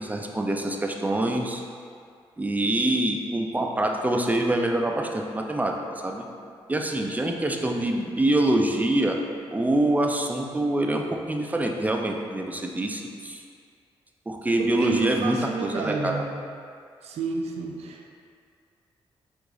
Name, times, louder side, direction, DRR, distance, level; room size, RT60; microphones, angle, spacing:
voice 1, 0.0-1.6 2.4-5.7 6.0-6.3 6.7-9.2 9.5-13.4 14.3-16.2, right 1 dB, 15° right, 2 dB, 0.5 m, -25 dB
voice 2, 14.6-16.2 17.0-18.1, right 4 dB, 75° right, 1 dB, 0.5 m, -31 dB
4.8 x 2.6 x 3.6 m, 2.3 s
supercardioid pair, 50°, 11 cm